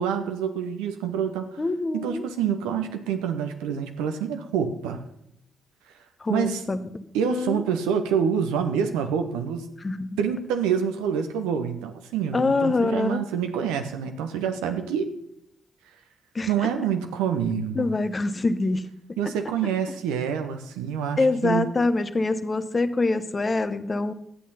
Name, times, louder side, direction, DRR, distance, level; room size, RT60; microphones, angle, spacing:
voice 1, 0.0-1.6 1.9-5.0 6.3-6.6 7.1-9.7 10.2-15.1 16.5-17.9 19.2-21.7, right 7 dB, 80° right, 7 dB, 1.0 m, -27 dB
voice 2, 1.6-2.2 6.2-6.8 7.2-7.6 9.8-10.2 12.3-13.2 16.3-16.5 17.8-18.8 21.2-24.1, left 3 dB, 35° left, 11 dB, 1.0 m, -25 dB
11.5 x 8.5 x 5.6 m, 0.78 s
hypercardioid pair, 40°, 0 cm